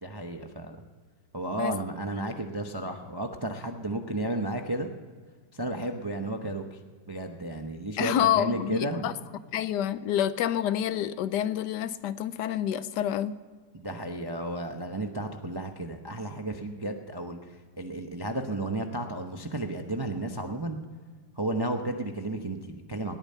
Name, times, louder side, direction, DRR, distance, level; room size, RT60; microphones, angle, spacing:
voice 1, 0.0-0.8 1.3-4.9 5.5-6.8 7.1-9.2 13.7-20.8 21.4-23.2, right 1 dB, 30° right, 5 dB, 0.4 m, -33 dB
voice 2, 8.0-9.1 9.5-13.4, left 10 dB, 80° left, 15 dB, 1.2 m, -28 dB
19.0 x 9.0 x 5.5 m, 1.5 s
omnidirectional pair, 1.9 m